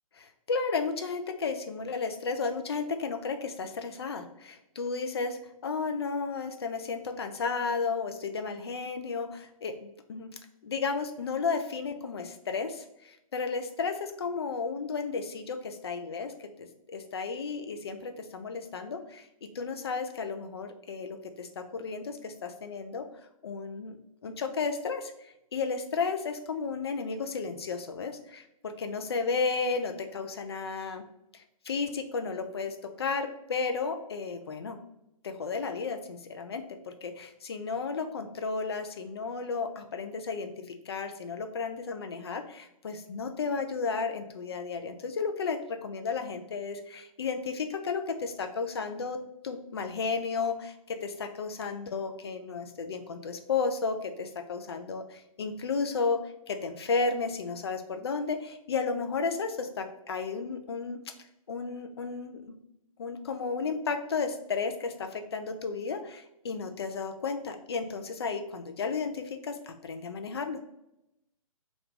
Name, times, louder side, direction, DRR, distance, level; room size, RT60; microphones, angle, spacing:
voice 1, 0.5-10.3 10.6-23.0 23.4-24.0 24.2-31.0 31.3-34.8 35.2-40.5 40.9-49.2 49.4-56.2 56.5-61.0 61.5-62.6 63.0-70.6, left 4 dB, 45° left, 6 dB, 0.4 m, -33 dB
2.4 x 2.2 x 3.7 m, 0.85 s
figure-of-eight pair, 135°, 19 cm